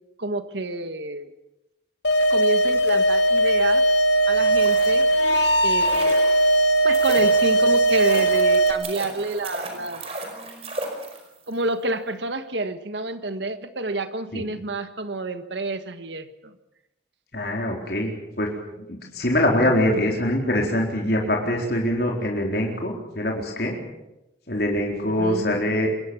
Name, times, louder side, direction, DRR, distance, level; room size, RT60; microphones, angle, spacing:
voice 1, 0.2-1.3 2.3-3.8 4.3-5.1 5.6-6.2 6.8-10.0 11.5-16.5 25.1-25.6, right 2 dB, 80° right, 9 dB, 1.6 m, -29 dB
sound 1, 2.0-8.7, right 1 dB, 80° left, 3.1 m, -19 dB
sound 2, 4.4-11.5 11.8-11.9, right 2 dB, 35° right, 5.0 m, -36 dB
voice 2, 17.3-18.5 18.8-23.8 24.5-25.9, left 1 dB, 60° left, 0 dB, 4.3 m, -24 dB
25.5 x 21.0 x 7.2 m, 0.95 s
head